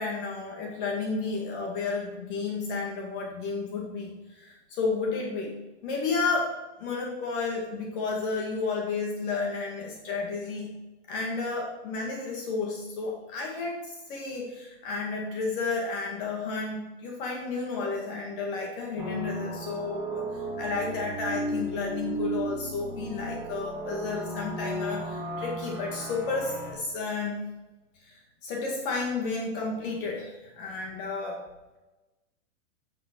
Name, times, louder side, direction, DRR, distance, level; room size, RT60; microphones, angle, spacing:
voice 1, 0.0-5.5 5.8-6.5 6.8-10.7 11.1-27.4 28.0-31.4, left 4 dB, 50° left, -1 dB, 2.0 m, -32 dB
sound 1, 19.0-26.7, right 1 dB, 10° right, 2.1 m, -35 dB
8.4 x 7.5 x 4.5 m, 1.1 s
hypercardioid pair, 150°, 35 cm